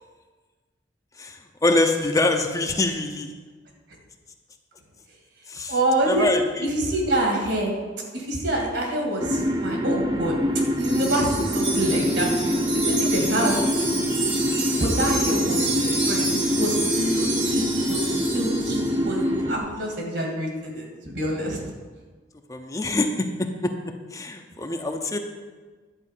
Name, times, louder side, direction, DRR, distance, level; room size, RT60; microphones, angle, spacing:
voice 1, 1.2-3.3 5.5-5.7 6.1-6.7 12.8-13.0 15.5-16.0 22.5-23.7 24.1-25.2, left 2 dB, 20° left, 4 dB, 0.7 m, -25 dB
voice 2, 5.7-6.3 6.6-7.7 8.1-10.3 10.8-13.6 14.8-18.1 18.3-21.6, right 1 dB, 65° right, 0 dB, 2.6 m, -26 dB
sound 1, 9.2-19.6, equal, 25° right, 0.8 m, -25 dB
Wind chime, 10.8-19.0, right 3 dB, 90° right, 2.8 m, -29 dB
11.0 x 4.9 x 8.3 m, 1.4 s
head